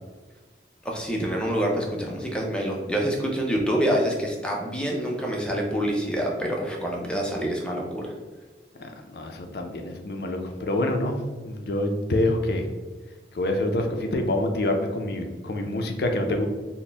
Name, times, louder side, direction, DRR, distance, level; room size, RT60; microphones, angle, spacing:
voice 1, 0.8-8.1, equal, 5° left, -1 dB, 0.5 m, -26 dB
voice 2, 8.8-11.2 11.4-12.7 13.3-16.5, left 1 dB, 60° left, 4 dB, 0.5 m, -26 dB
4.1 x 2.1 x 3.3 m, 1.3 s
head